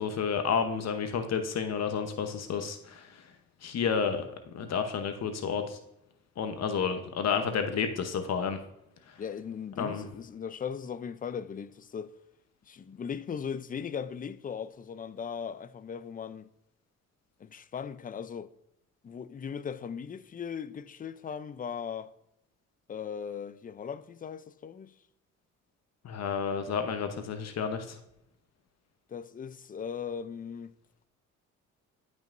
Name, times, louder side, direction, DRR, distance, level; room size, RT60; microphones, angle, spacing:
voice 1, 0.0-3.2 3.6-4.3 4.5-5.8 6.4-8.6 9.8-10.0 26.0-28.0, left 6 dB, 60° left, 0.9 m, -30 dB
voice 2, 9.2-12.2 12.7-16.5 17.4-18.5 19.0-22.1 22.9-24.9 29.1-30.7, left 7 dB, 30° left, 0.5 m, -38 dB
12.0 x 5.5 x 2.6 m
cardioid pair, 90°, 30 cm